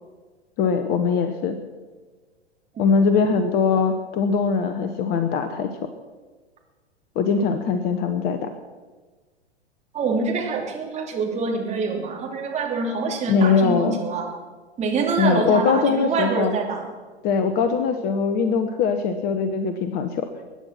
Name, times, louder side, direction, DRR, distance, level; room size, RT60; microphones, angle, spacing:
voice 1, 0.6-1.6 2.8-5.7 7.1-8.5 13.3-14.0 15.2-16.5 17.2-20.3, left 5 dB, 30° left, 8 dB, 1.0 m, -21 dB
voice 2, 9.9-14.3 14.8-16.9, right 4 dB, 20° right, 0 dB, 2.9 m, -25 dB
22.0 x 9.8 x 5.9 m, 1.3 s
figure-of-eight pair, 105°, 33 cm